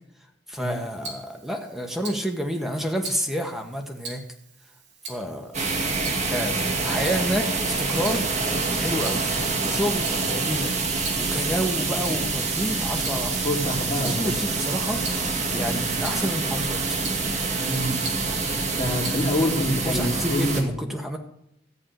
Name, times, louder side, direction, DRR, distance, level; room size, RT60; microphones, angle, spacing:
voice 1, 0.5-4.2 5.1-5.6 6.3-8.3 8.7-9.2 9.6-10.7 11.2-13.4 14.0-15.0 15.5-16.8 19.8-21.2, equal, ahead, 3 dB, 1.4 m, -29 dB
Tick-tock, 0.5-19.6, right 3 dB, 80° right, 3.2 m, -43 dB
sound 1, 5.5-20.6, right 3 dB, 40° right, 1.8 m, -26 dB
voice 2, 13.4-14.3 17.7-18.0 18.8-20.8, left 1 dB, 30° left, -3 dB, 3.2 m, -26 dB
14.0 x 4.9 x 9.1 m, 0.77 s
head